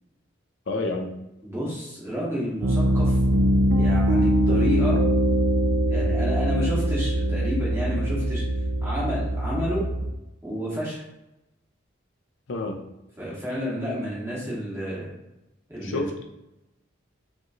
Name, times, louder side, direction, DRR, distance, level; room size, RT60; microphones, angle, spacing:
voice 1, 0.7-1.1 12.5-12.8 15.8-16.2, left 2 dB, 70° left, 3 dB, 0.5 m, -29 dB
voice 2, 1.4-3.1 3.7-5.0 5.9-8.4 8.8-9.9 10.4-11.0 13.2-15.1 15.7-16.1, equal, 15° right, -7 dB, 1.3 m, -30 dB
Piano, 2.6-10.1, equal, 85° right, 0.5 m, -22 dB
5.0 x 3.1 x 2.5 m, 0.93 s
head